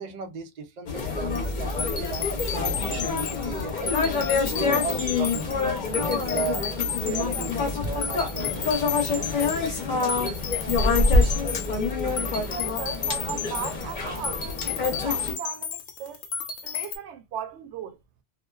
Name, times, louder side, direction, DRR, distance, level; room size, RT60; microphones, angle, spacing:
voice 1, 0.0-3.9 4.4-10.0, right 5 dB, 60° right, 0.4 m, -36 dB
sound 1, 0.9-15.3, left 3 dB, 45° left, 0.8 m, -26 dB
sound 2, 1.3-17.0, left 7 dB, 90° left, 0.9 m, -33 dB
voice 2, 12.4-16.2 16.6-18.0, right 8 dB, 75° right, 0.9 m, -37 dB
2.4 x 2.3 x 2.3 m
omnidirectional pair, 1.2 m